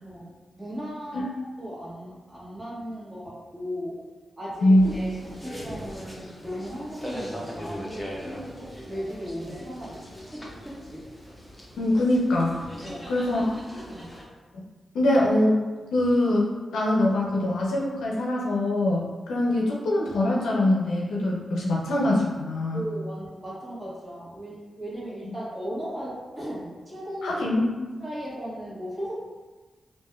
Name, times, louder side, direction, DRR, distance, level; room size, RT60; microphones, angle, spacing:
voice 1, 0.0-4.0 4.4-8.3 8.8-10.0 10.3-11.0 12.8-13.1 13.9-14.1 22.7-27.4 28.0-29.3, equal, 20° right, -8 dB, 1.4 m, -37 dB
sound 1, 4.8-14.2, equal, 5° left, 0.7 m, -39 dB
voice 2, 11.8-12.6 13.1-13.5 14.9-15.6 15.9-22.8 27.2-27.7, left 1 dB, 90° left, -3 dB, 0.5 m, -23 dB
3.2 x 2.5 x 2.3 m, 1.3 s
supercardioid pair, 45°, 0 cm